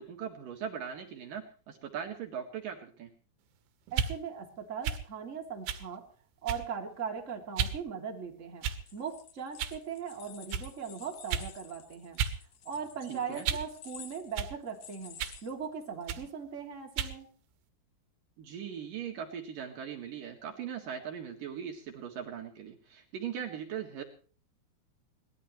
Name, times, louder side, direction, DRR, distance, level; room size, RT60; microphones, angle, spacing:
voice 1, 0.0-3.1 13.1-13.5 18.4-24.0, right 8 dB, 60° right, 3 dB, 3.2 m, -40 dB
voice 2, 3.9-6.0 6.4-8.7 8.9-12.2 12.6-17.3, right 6 dB, 20° right, 2 dB, 2.6 m, -39 dB
sound 1, 3.9-4.1 4.8-5.0 5.7-5.9 6.5-6.8 7.6-7.8 8.6-9.0 9.6-9.8 10.5-10.7 11.3-11.5 12.2-12.4 12.7-13.7 14.4-14.5 15.2-15.4 16.1-16.3 17.0-17.2, right 8 dB, 75° right, 3.2 m, -33 dB
sound 2, 8.7-16.2, left 8 dB, 60° left, 2.2 m, -52 dB
22.5 x 19.5 x 3.2 m, 0.42 s
omnidirectional pair, 4.7 m